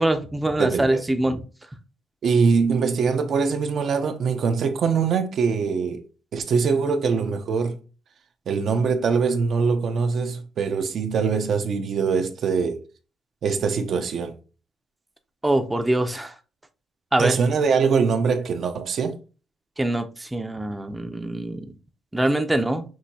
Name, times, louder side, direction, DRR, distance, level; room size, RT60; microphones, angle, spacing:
voice 1, 0.0-1.4 15.4-16.3 17.1-17.4 19.8-21.7 22.1-22.8, right 1 dB, 10° right, 0.6 m, -23 dB
voice 2, 0.6-1.0 2.2-6.0 6.3-7.8 8.5-12.8 13.4-14.4 17.2-19.2, right 5 dB, 60° right, 0.7 m, -23 dB
6.2 x 2.8 x 2.8 m
cardioid pair, 90°, 0 cm